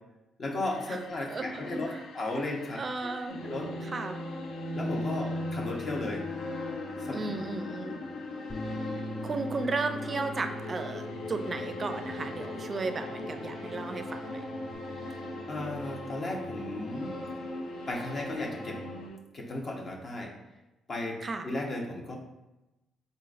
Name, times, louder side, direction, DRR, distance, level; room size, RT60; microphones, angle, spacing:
voice 1, 0.4-2.8 3.4-3.7 4.8-6.3 7.0-7.1 15.5-17.1 17.9-18.8 19.3-20.3 20.9-21.2 21.4-22.2, left 2 dB, 45° left, 0 dB, 0.9 m, -35 dB
sound 1, 0.6-19.2, left 5 dB, 70° left, 0.3 m, -46 dB
voice 2, 1.3-2.1 2.7-3.4 3.8-4.2 7.1-8.0 9.2-14.4 21.2-21.5, right 3 dB, 35° right, 8 dB, 0.4 m, -34 dB
sound 2, 3.3-19.1, left 1 dB, 90° left, 1.0 m, -39 dB
Bass guitar, 8.5-14.7, equal, 20° left, 0.6 m, -43 dB
4.0 x 3.9 x 2.5 m, 0.98 s
cardioid pair, 90°, 0 cm